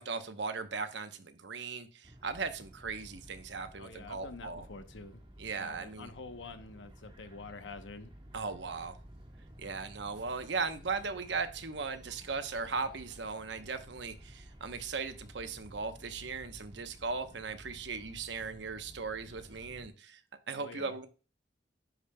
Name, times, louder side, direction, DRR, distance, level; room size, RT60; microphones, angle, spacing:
voice 1, 0.0-4.6 5.4-6.1 8.3-9.0 9.6-20.2 20.5-21.1, right 4 dB, 70° right, 0.9 m, -38 dB
sound 1, 2.0-19.9, equal, 30° right, 1.4 m, -53 dB
voice 2, 3.8-5.2 5.5-8.1 20.5-21.0, left 3 dB, 90° left, 0.9 m, -47 dB
10.5 x 5.1 x 2.2 m
head